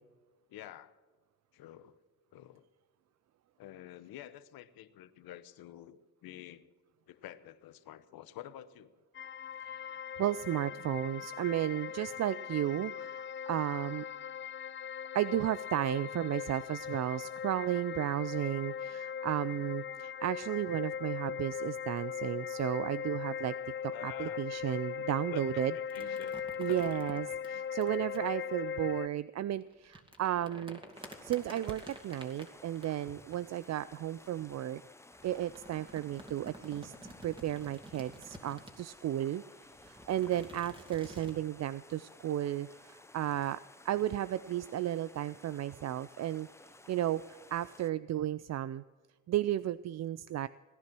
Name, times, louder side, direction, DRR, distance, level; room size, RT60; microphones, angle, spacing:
voice 1, 0.5-0.9 1.5-2.0 2.3-2.6 3.6-6.7 7.1-8.9 19.5-19.9 23.9-24.5 25.1-26.4 26.7-27.2 28.1-28.2, left 12 dB, 80° left, 13 dB, 1.0 m, -49 dB
sound 1, 9.1-29.1, left 8 dB, 35° left, 0.4 m, -39 dB
voice 2, 9.7-14.1 15.1-23.6 23.8-26.2 26.6-34.8 35.2-36.9 37.2-39.4 39.8-43.6 43.8-46.5 46.9-48.8 49.3-50.5, right 12 dB, 50° right, 17 dB, 0.4 m, -34 dB
flotador de plastico, 25.9-28.2 29.6-34.5 35.1-39.0 39.6-41.4, equal, 15° right, 2.6 m, -51 dB
sound 2, 30.9-47.9, left 2 dB, 10° left, 0.7 m, -56 dB
18.0 x 10.5 x 6.1 m, 1.4 s
supercardioid pair, 75°, 36 cm